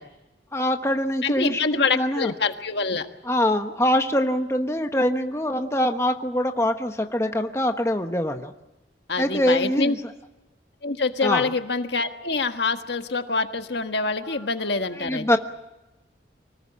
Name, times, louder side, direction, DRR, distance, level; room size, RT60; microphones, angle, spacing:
voice 1, 0.5-2.3 3.2-8.5 9.2-10.0 11.2-11.5 14.2-14.4 15.0-15.4, left 1 dB, 15° left, 5 dB, 1.2 m, -24 dB
voice 2, 1.2-3.1 9.1-9.9 10.8-15.3, left 4 dB, 70° left, 7 dB, 1.6 m, -25 dB
25.0 x 19.0 x 8.6 m, 1.0 s
head